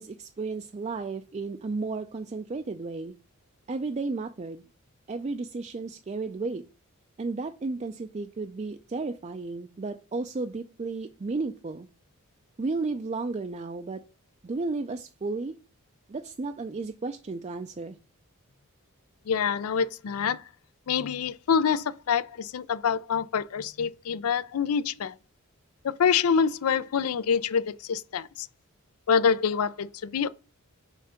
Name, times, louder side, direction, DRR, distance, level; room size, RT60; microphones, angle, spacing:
voice 1, 0.0-3.1 3.7-4.6 5.1-6.6 7.2-11.9 12.6-14.0 14.4-15.6 16.1-18.0, right 3 dB, 30° right, 0.4 m, -33 dB
voice 2, 19.3-20.4 20.9-25.1 25.8-28.5 29.1-30.3, left 6 dB, 85° left, 0.4 m, -26 dB
5.8 x 3.7 x 5.6 m
head